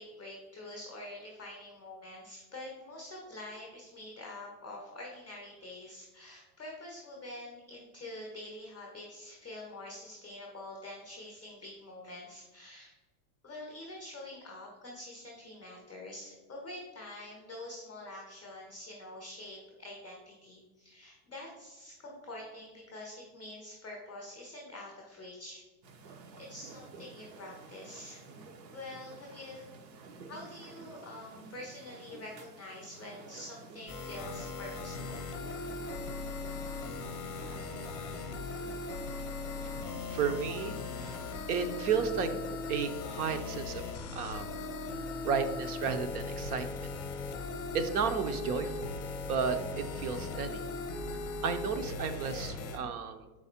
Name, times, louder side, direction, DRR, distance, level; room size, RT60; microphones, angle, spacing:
voice 1, 0.0-12.9 13.4-25.6 26.4-28.2 28.7-29.7 30.3-35.2, left 1 dB, 5° left, -15 dB, 0.3 m, -46 dB
sound 1, 25.8-42.1, right 4 dB, 90° right, 1.1 m, -51 dB
sound 2, 33.9-52.8, left 3 dB, 25° left, 0.7 m, -39 dB
voice 2, 40.1-41.2 41.5-44.6 45.2-46.9 47.7-48.9 49.2-50.6 51.4-53.3, right 6 dB, 60° right, 8 dB, 0.8 m, -33 dB
6.2 x 4.8 x 4.3 m, 1.2 s
supercardioid pair, 180°, 50 cm